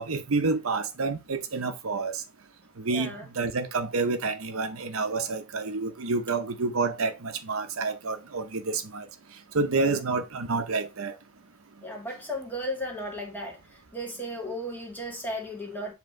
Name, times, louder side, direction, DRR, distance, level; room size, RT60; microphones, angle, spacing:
voice 1, 0.0-2.2 2.8-9.1 9.5-11.2, right 3 dB, 70° right, 0.8 m, -29 dB
voice 2, 2.9-3.2 9.8-10.0 11.8-13.6 13.9-15.9, equal, 10° left, 1.7 m, -35 dB
7.7 x 3.0 x 4.3 m
head